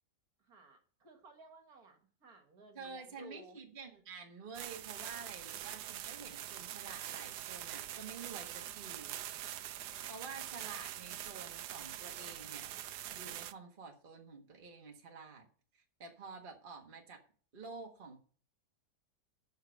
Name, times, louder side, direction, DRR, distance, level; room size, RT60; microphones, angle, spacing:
voice 1, 0.4-3.6, right 2 dB, 60° right, 4 dB, 2.3 m, -57 dB
voice 2, 2.7-9.2 10.1-12.7 13.1-15.5 15.7-17.2 17.5-18.2, right 4 dB, 35° right, 2 dB, 1.5 m, -49 dB
sound 1, 4.5-13.5, right 12 dB, 80° right, 1.2 m, -44 dB
12.5 x 4.9 x 7.0 m, 0.44 s
omnidirectional pair, 1.8 m